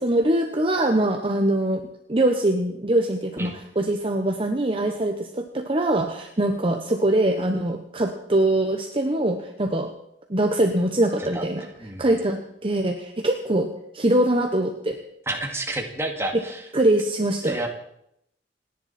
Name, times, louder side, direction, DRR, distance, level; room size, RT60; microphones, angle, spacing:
voice 1, 0.0-1.8 2.1-9.9 10.3-11.6 12.0-13.7 13.9-15.0 16.7-17.6, right 1 dB, 30° right, 4 dB, 1.1 m, -23 dB
voice 2, 11.3-12.0 15.3-16.7 17.4-17.7, right 2 dB, 15° right, 2 dB, 2.1 m, -30 dB
28.0 x 10.5 x 4.3 m, 0.76 s
head